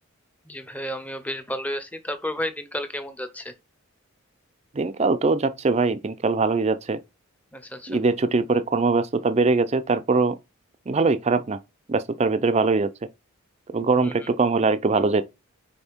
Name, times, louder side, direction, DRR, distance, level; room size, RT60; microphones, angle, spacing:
voice 1, 0.4-3.5 7.5-8.0 14.0-14.3, left 1 dB, 5° left, 0.7 m, -32 dB
voice 2, 4.7-7.0 7.9-10.4 10.9-11.6 11.9-12.9 13.7-15.2, right 3 dB, 30° right, 0.4 m, -22 dB
5.4 x 4.3 x 4.5 m
head